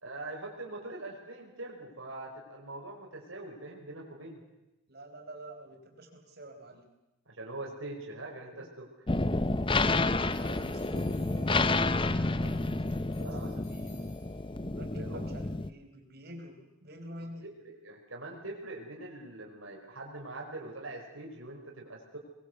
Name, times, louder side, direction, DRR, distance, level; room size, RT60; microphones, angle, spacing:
voice 1, 0.0-4.4 7.3-8.9 13.2-13.5 14.9-15.2 17.4-22.2, right 2 dB, 70° right, -1 dB, 5.4 m, -43 dB
voice 2, 4.9-6.9 8.4-8.7 10.3-12.8 13.2-14.1 14.5-17.5, right 1 dB, 45° right, 4 dB, 4.8 m, -48 dB
sound 1, 9.1-15.7, left 2 dB, 25° left, 0.7 m, -30 dB
sound 2, 10.3-12.0 12.4-14.6, left 5 dB, 65° left, 7.3 m, -60 dB
22.0 x 22.0 x 8.2 m, 1.0 s
head